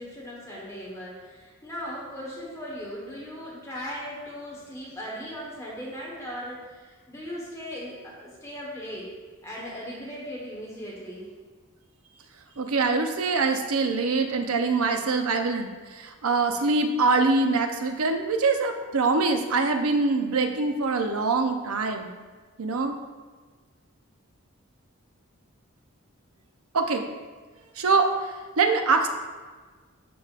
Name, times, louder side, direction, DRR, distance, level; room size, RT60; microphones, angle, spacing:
voice 1, 0.0-9.1 9.4-11.3, equal, 15° left, -5 dB, 1.3 m, -38 dB
voice 2, 12.6-22.1 22.6-23.0 26.7-27.0 27.8-29.1, right 3 dB, 80° right, 5 dB, 0.7 m, -24 dB
12.0 x 4.8 x 2.5 m, 1.4 s
head